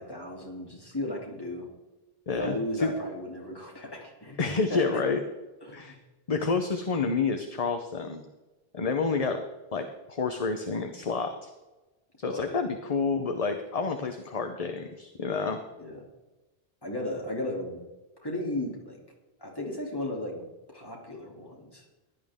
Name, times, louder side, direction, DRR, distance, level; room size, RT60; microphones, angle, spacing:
voice 1, 0.0-1.7 2.4-4.4 4.7-5.0 5.6-5.9 12.2-12.6 15.8-16.0 16.8-17.8 18.2-19.0 19.4-20.5 20.7-21.8, left 1 dB, 20° left, -2 dB, 2.9 m, -35 dB
voice 2, 2.3-2.9 4.4-5.2 5.7-6.0 6.3-8.2 8.7-9.4 9.7-11.5 12.2-15.6, left 4 dB, 40° left, 6 dB, 0.9 m, -29 dB
16.0 x 11.5 x 3.6 m, 1.1 s
omnidirectional pair, 1.0 m